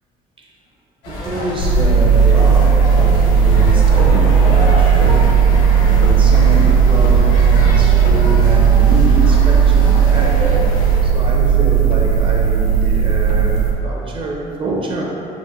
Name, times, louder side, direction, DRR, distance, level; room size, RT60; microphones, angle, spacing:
sound 1, 1.0-11.0, left 1 dB, 85° left, 1.0 m, -27 dB
voice 1, 1.1-10.5 11.0-15.0, right 2 dB, 30° right, -1 dB, 0.5 m, -25 dB
sound 2, 1.6-13.7, right 7 dB, 65° left, 0.4 m, -13 dB
3.9 x 2.4 x 2.7 m, 2.6 s
cardioid pair, 110°, 17 cm